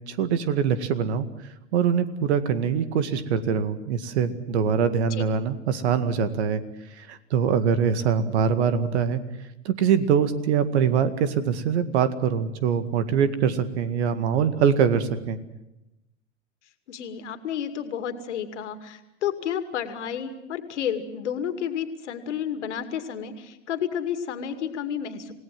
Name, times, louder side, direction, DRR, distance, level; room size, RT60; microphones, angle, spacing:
voice 1, 0.1-1.3 1.7-6.6 7.0-9.2 9.7-15.4, right 7 dB, 65° right, 12 dB, 2.1 m, -23 dB
voice 2, 16.9-25.3, left 8 dB, 70° left, 9 dB, 2.5 m, -31 dB
28.0 x 17.5 x 7.7 m, 0.92 s
hypercardioid pair, 95°, 36 cm